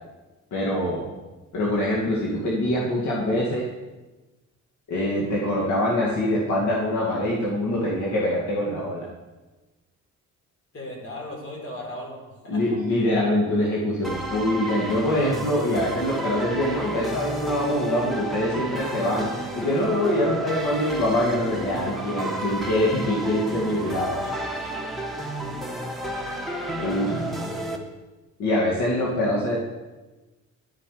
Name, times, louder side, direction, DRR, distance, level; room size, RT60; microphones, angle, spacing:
voice 1, 0.5-1.0 1.5-3.7 4.9-9.1 12.5-19.3 19.5-24.1 26.8-27.1 28.4-29.6, left 1 dB, 75° left, -4 dB, 2.2 m, -24 dB
voice 2, 10.7-12.8 22.3-22.5 23.5-24.4 24.8-24.9 26.8-27.4, left 1 dB, 45° left, -1 dB, 4.3 m, -38 dB
sound 1, 14.0-27.8, right 1 dB, ahead, 1.6 m, -31 dB
11.5 x 9.6 x 5.0 m, 1.2 s
cardioid pair, 90°, 30 cm